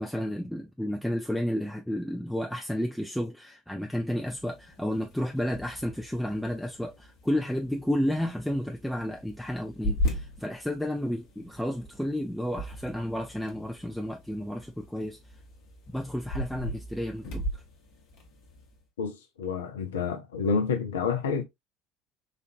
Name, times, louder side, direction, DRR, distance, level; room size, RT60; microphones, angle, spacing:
voice 1, 0.0-15.2 15.9-17.6, equal, ahead, 0.5 m, -31 dB
sound 1, 4.0-18.8, equal, 55° left, 1.0 m, -38 dB
voice 2, 19.0-21.4, left 5 dB, 75° left, 0.6 m, -29 dB
4.2 x 2.5 x 2.5 m
figure-of-eight pair, 60°, 0 cm